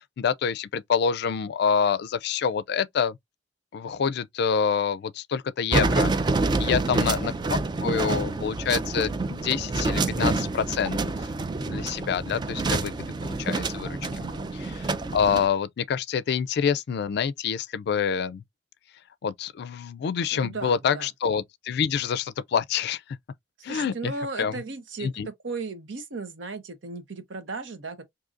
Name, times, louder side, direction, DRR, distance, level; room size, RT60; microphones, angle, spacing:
voice 1, 0.2-3.2 3.7-6.1 6.6-11.3 11.7-12.9 13.2-14.3 14.6-18.4 19.2-23.0 23.6-24.1 24.4-24.6 25.0-25.3, left 7 dB, 60° left, 0.3 m, -27 dB
sound 1, 5.7-15.5, right 3 dB, 25° right, 0.3 m, -27 dB
voice 2, 6.6-7.1 14.1-14.5 20.3-21.1 23.6-25.1 25.4-28.0, right 3 dB, 85° right, 0.8 m, -36 dB
3.8 x 2.7 x 2.5 m
head